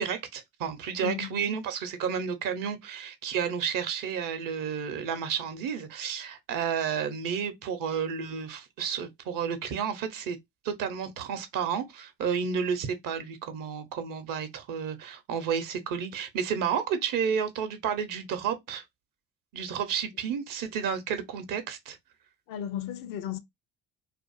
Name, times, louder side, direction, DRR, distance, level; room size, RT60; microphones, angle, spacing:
voice 1, 0.0-10.4 10.6-18.8 19.5-22.0, right 7 dB, 60° right, 0.7 m, -31 dB
voice 2, 1.0-1.5 22.5-23.4, left 9 dB, 60° left, 0.5 m, -34 dB
2.5 x 2.4 x 2.3 m
hypercardioid pair, 50°, 38 cm